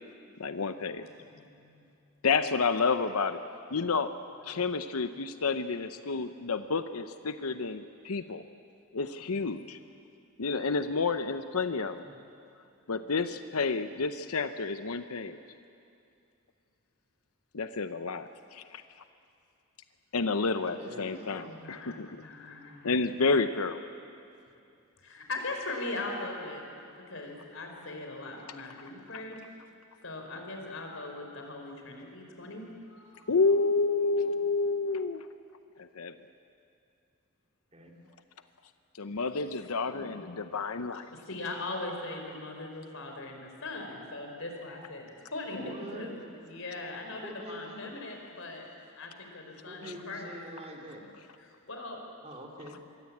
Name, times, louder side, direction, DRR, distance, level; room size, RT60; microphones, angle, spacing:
voice 1, 0.4-1.1 2.2-3.4 3.7-4.1 4.4-8.4 8.9-9.8 10.4-12.0 12.9-15.4 17.5-18.8 20.1-22.3 22.8-23.8 29.1-29.2 33.3-35.3 35.8-36.1 38.9-41.1 49.8-49.9, left 4 dB, 85° left, 10 dB, 0.8 m, -30 dB
voice 2, 1.0-1.8 4.5-4.6 9.3-9.4 12.9-13.1 21.4-21.9 22.2-23.1 25.0-26.6 27.0-29.4 30.0-33.3 41.1-46.1 46.4-48.7 48.9-50.3 51.6-52.0, left 2 dB, 65° left, 3 dB, 4.6 m, -40 dB
voice 3, 20.3-21.5 34.3-34.5 37.7-37.9 39.8-40.5 45.5-46.2 47.2-48.0 49.7-51.1 52.2-52.8, equal, 30° right, 1 dB, 3.2 m, -45 dB
26.5 x 22.5 x 8.6 m, 2.5 s
head